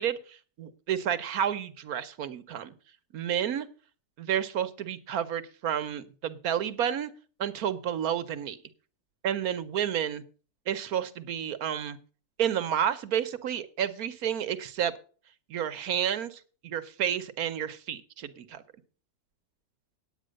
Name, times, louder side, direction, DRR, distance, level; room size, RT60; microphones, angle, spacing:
voice 1, 0.0-2.7 3.1-3.7 4.2-7.1 7.4-8.6 9.2-10.2 10.7-12.0 12.4-14.9 15.5-18.6, right 9 dB, 70° right, 11 dB, 1.2 m, -30 dB
9.2 x 8.9 x 6.3 m, 0.39 s
omnidirectional pair, 1.7 m